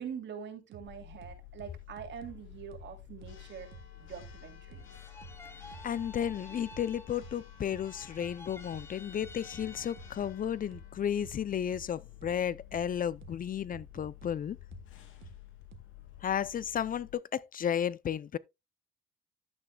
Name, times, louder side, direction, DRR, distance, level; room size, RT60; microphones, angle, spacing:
voice 1, 0.0-3.7 4.0-4.9, right 7 dB, 65° right, 2.9 m, -44 dB
sound 1, 0.7-0.8 1.2-2.3 2.7-2.8 3.2-3.3 3.7-3.8 4.2-4.3 4.7-4.8 5.2-5.3 5.7-6.3 6.7-6.8 7.2-7.3 7.7-7.8 8.2-8.3 8.7-8.8 9.2-10.3 10.7-10.8 11.2-11.3 11.7-11.8 12.2-12.3 12.7-12.8 13.2-13.3 13.7-14.3 14.7-14.8 15.2-15.3 15.7-15.8, right 7 dB, 90° right, 1.2 m, -50 dB
Church bell, 0.8-17.1, left 12 dB, 85° left, 2.7 m, -51 dB
sound 2, 4.8-7.4 7.7-10.4, left 2 dB, 10° left, 1.3 m, -52 dB
voice 2, 5.8-14.6 16.2-18.4, left 9 dB, 45° left, 0.5 m, -33 dB
11.5 x 8.6 x 2.3 m
cardioid pair, 90°, 20 cm